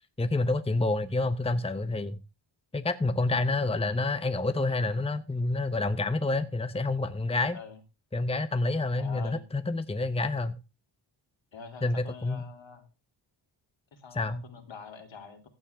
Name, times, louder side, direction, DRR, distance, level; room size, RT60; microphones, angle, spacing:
voice 1, 0.2-2.2 2.7-7.6 8.1-10.6 11.8-12.4 14.1-14.4, left 2 dB, 10° left, 1.0 m, -28 dB
voice 2, 9.0-9.4 11.5-12.9 13.9-15.5, left 6 dB, 65° left, 3.4 m, -45 dB
15.5 x 11.0 x 3.6 m
cardioid pair, 90°, 49 cm